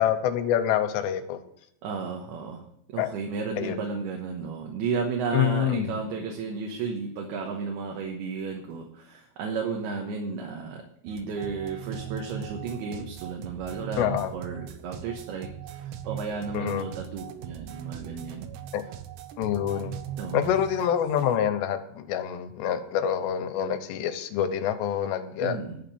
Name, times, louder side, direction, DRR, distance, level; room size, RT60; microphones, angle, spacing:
voice 1, 0.0-1.4 3.0-3.1 3.6-3.8 5.3-6.0 14.0-14.3 16.5-16.8 18.7-18.8 19.4-20.0 20.3-25.6, left 9 dB, 85° left, 8 dB, 3.1 m, -26 dB
voice 2, 1.8-2.7 2.9-15.5 15.8-18.5 20.2-20.6 25.4-25.8, right 5 dB, 70° right, 1 dB, 3.0 m, -33 dB
sound 1, 11.1-21.4, right 10 dB, 90° right, 3.0 m, -40 dB
11.5 x 5.2 x 8.5 m, 0.74 s
omnidirectional pair, 4.9 m